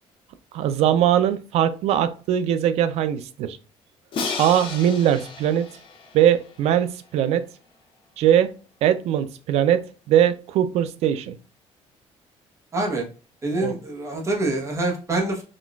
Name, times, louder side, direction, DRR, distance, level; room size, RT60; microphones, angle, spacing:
voice 1, 0.5-3.6 4.4-5.7 6.1-7.5 8.2-8.5 8.8-11.4 13.6-13.7, right 10 dB, 70° right, 0.4 m, -21 dB
Crash cymbal, 4.1-7.1, left 4 dB, 50° left, 0.8 m, -33 dB
voice 2, 12.7-13.0 13.4-15.4, right 2 dB, 25° right, 0.9 m, -25 dB
3.8 x 2.3 x 2.3 m
cardioid pair, 135°, 11 cm